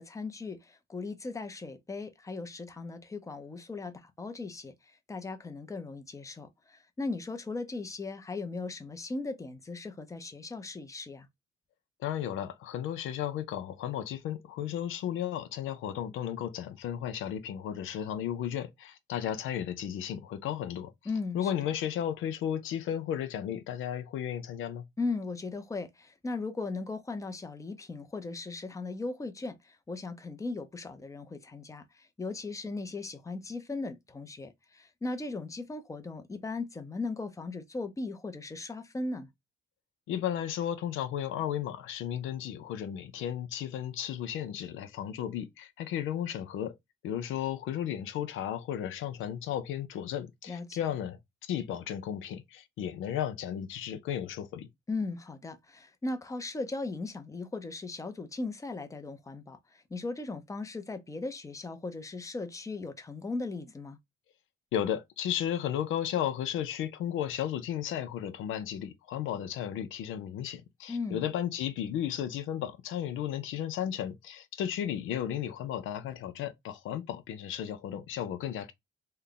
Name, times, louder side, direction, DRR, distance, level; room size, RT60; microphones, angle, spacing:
voice 1, 0.0-11.3 21.0-21.7 25.0-39.3 50.5-50.9 54.9-64.0 70.9-71.2, left 3 dB, 15° left, 0.6 m, -38 dB
voice 2, 12.0-20.9 21.3-24.8 40.1-46.8 47.0-54.7 64.7-78.7, left 10 dB, 85° left, 0.6 m, -34 dB
3.3 x 2.2 x 3.9 m
cardioid pair, 90°, 20 cm